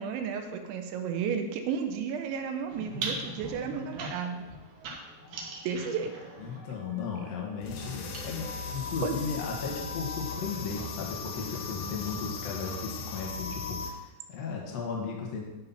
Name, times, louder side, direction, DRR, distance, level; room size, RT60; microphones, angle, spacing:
voice 1, 0.0-4.4 5.6-6.1 9.0-9.1, right 7 dB, 80° right, 6 dB, 3.0 m, -33 dB
sound 1, 2.7-8.8 9.6-12.3, right 2 dB, 65° right, 2.5 m, -42 dB
voice 2, 6.4-15.4, left 5 dB, 80° left, -1 dB, 1.5 m, -36 dB
sound 2, 7.6-13.9, left 4 dB, 65° left, 2.8 m, -37 dB
12.5 x 6.0 x 5.5 m, 1.1 s
omnidirectional pair, 5.7 m